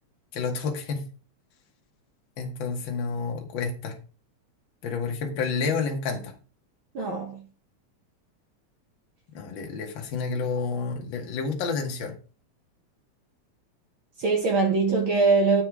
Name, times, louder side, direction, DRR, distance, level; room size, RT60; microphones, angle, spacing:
voice 1, 0.3-1.0 2.4-4.0 4.8-6.3 9.3-12.1, left 4 dB, 50° left, 1.6 m, -29 dB
voice 2, 6.9-7.4 14.2-15.6, right 4 dB, 55° right, 1.5 m, -22 dB
7.6 x 4.9 x 4.7 m
omnidirectional pair, 3.4 m